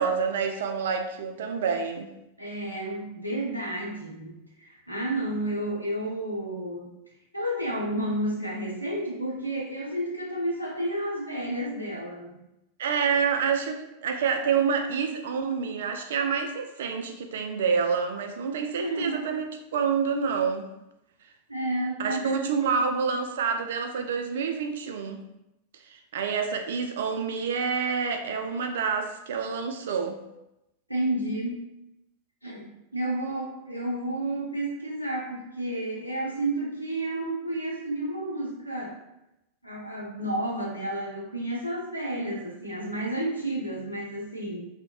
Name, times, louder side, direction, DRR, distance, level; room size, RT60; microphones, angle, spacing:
voice 1, 0.0-2.1 12.8-19.5 19.7-20.7 22.0-25.2 25.9-30.2, right 6 dB, 60° right, 5 dB, 0.3 m, -28 dB
voice 2, 2.4-6.9 7.3-12.3 18.7-19.2 21.5-22.7 30.9-31.6 32.4-38.9 39.6-44.7, right 1 dB, 90° left, -4 dB, 0.6 m, -31 dB
2.6 x 2.0 x 3.0 m, 0.89 s
figure-of-eight pair, 90°, 0 cm